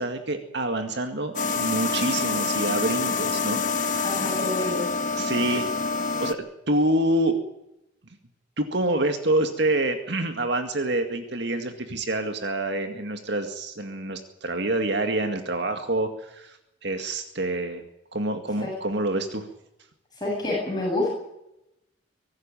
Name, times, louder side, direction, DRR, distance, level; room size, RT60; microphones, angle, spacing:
voice 1, 0.0-4.2 5.2-5.7 6.2-7.4 8.6-17.8 18.1-19.5, right 1 dB, 55° right, 6 dB, 2.1 m, -27 dB
sound 1, 1.4-6.3, left 4 dB, 40° left, 1.2 m, -26 dB
voice 2, 4.0-4.9 5.4-5.6 18.6-18.7 20.2-21.1, left 2 dB, 20° left, -3 dB, 7.9 m, -28 dB
24.0 x 13.0 x 8.9 m, 0.86 s
head